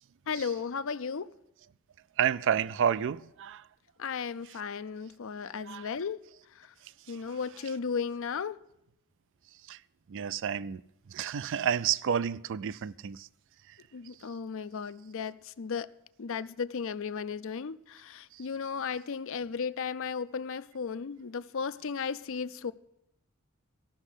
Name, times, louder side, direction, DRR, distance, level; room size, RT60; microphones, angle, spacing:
voice 1, 0.3-1.3 4.0-6.2 6.6-6.7 7.1-8.6 13.9-15.9 16.2-22.7, left 6 dB, 65° left, 0.5 m, -35 dB
voice 2, 2.2-3.6 5.7-5.9 7.1-7.2 9.7-9.8 10.1-10.8 11.1-13.3 18.3-18.4, right 8 dB, 60° right, 0.4 m, -30 dB
15.0 x 6.2 x 9.9 m
head